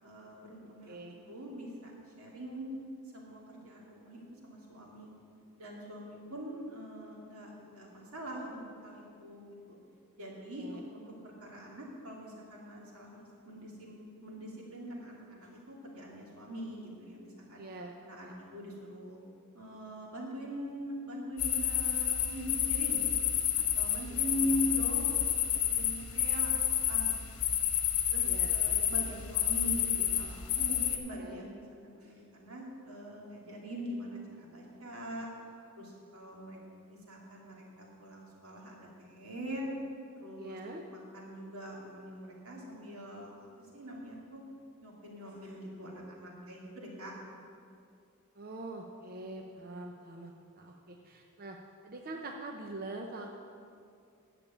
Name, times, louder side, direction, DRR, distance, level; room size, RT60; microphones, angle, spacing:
voice 1, 0.0-1.0 1.3-1.9 2.2-2.7 3.1-5.1 5.6-9.8 10.2-17.6 18.0-19.2 19.5-23.0 23.8-27.1 27.4-27.5 28.1-35.3 35.7-36.6 36.9-39.7 40.1-40.6 40.9-43.5 43.7-44.4 44.8-47.1, equal, 85° right, -3 dB, 2.7 m, -42 dB
voice 2, 0.9-1.2 10.6-10.8 17.6-17.9 18.2-18.3 28.2-28.8 31.2-31.5 40.4-40.8 48.4-51.6 51.8-53.3, right 2 dB, 45° right, 2 dB, 0.7 m, -44 dB
sound 1, 21.4-31.0, left 10 dB, 85° left, 1.1 m, -30 dB
9.9 x 6.9 x 8.4 m, 2.4 s
head